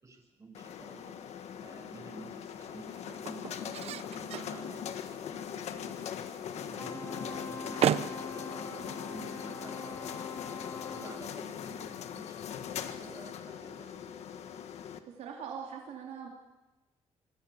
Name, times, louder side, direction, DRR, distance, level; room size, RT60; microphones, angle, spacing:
voice 1, 0.0-14.0, right 3 dB, 30° right, 1 dB, 7.6 m, -52 dB
sound 1, 0.5-15.0, left 8 dB, 80° left, 1.6 m, -41 dB
sound 2, 0.9-11.3, right 10 dB, 70° right, 0.9 m, -39 dB
Wind instrument woodwind instrument, 6.8-11.3, left 3 dB, 30° left, 2.7 m, -44 dB
voice 2, 15.0-16.3, right 7 dB, 85° right, 0 dB, 3.4 m, -43 dB
25.5 x 24.5 x 7.2 m, 1.1 s
cardioid pair, 105°, 11 cm